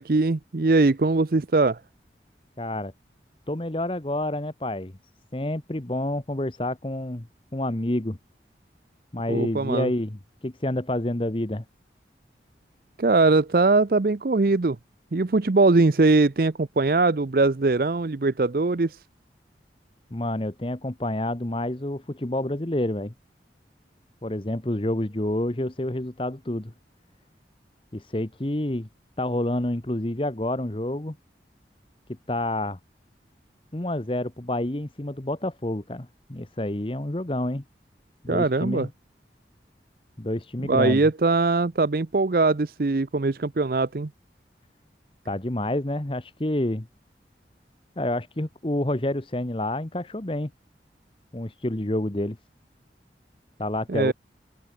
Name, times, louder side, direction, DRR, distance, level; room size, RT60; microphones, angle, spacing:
voice 1, 0.0-1.8 9.3-9.9 13.0-14.8 15.1-19.0 38.3-38.9 40.7-44.1 53.9-54.1, right 3 dB, 55° right, 0.6 m, -21 dB
voice 2, 2.6-2.9 3.5-4.9 5.3-7.3 7.5-8.2 9.1-11.6 20.1-23.1 24.2-26.7 27.9-28.9 29.2-31.2 32.3-32.8 33.7-37.6 38.2-38.9 40.2-41.1 45.3-46.9 48.0-50.5 51.3-52.4 53.6-54.1, left 1 dB, 30° left, 1.1 m, -28 dB
open air
head